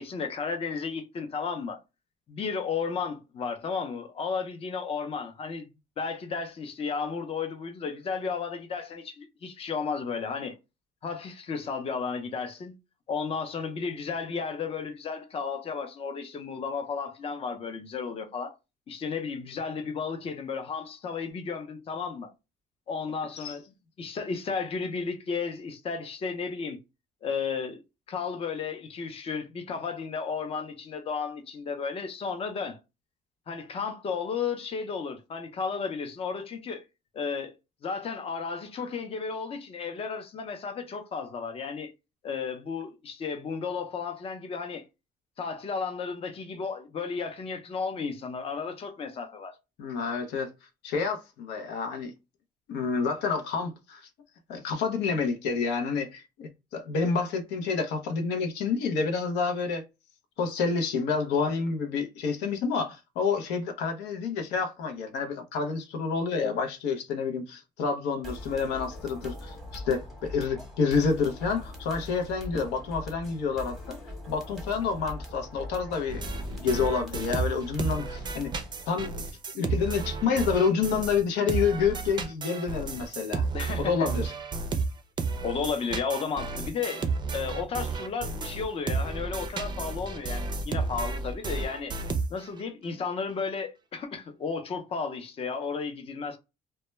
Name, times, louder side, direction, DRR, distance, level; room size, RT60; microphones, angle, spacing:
voice 1, 0.0-1.8 2.3-5.7 6.0-10.6 11.0-12.7 13.1-18.5 18.9-22.3 22.9-23.7 24.0-26.8 27.2-27.8 28.1-32.8 33.5-36.8 37.1-37.5 37.8-41.9 42.2-44.8 45.4-49.6 83.5-84.1 85.4-91.9 92.3-96.4, left 5 dB, 35° left, 0.5 m, -33 dB
voice 2, 49.8-50.5 50.8-52.1 52.7-54.1 54.5-59.8 60.4-74.0 74.3-78.5 78.9-79.2 79.5-83.5 83.8-84.3, left 5 dB, 90° left, 0.6 m, -28 dB
sound 1, 68.2-78.9, left 1 dB, ahead, 0.8 m, -42 dB
sound 2, 76.1-81.2 81.5-92.6, right 4 dB, 25° right, 0.4 m, -32 dB
2.2 x 2.1 x 3.0 m
cardioid pair, 110°, 17 cm